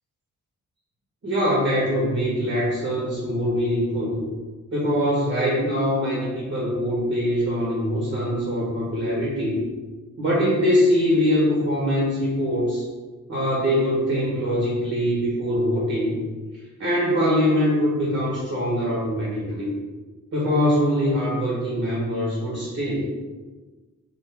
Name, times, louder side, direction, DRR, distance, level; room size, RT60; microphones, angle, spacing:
voice 1, 1.2-4.2 4.7-9.6 10.2-12.8 13.3-16.2 16.8-19.7 20.3-23.1, equal, 50° right, -5 dB, 1.3 m, -23 dB
4.4 x 2.7 x 3.4 m, 1.3 s
wide cardioid pair, 125°, 32 cm